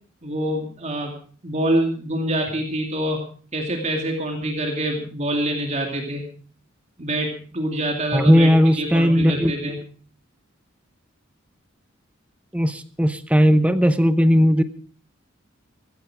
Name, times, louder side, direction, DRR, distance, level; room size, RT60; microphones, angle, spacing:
voice 1, 0.2-1.1 1.4-3.2 3.5-6.2 7.0-8.5 8.7-9.8, right 1 dB, 35° right, 2 dB, 2.5 m, -25 dB
voice 2, 8.1-9.7 12.5-14.6, equal, 5° right, 11 dB, 0.8 m, -17 dB
15.5 x 15.0 x 4.9 m, 0.43 s
head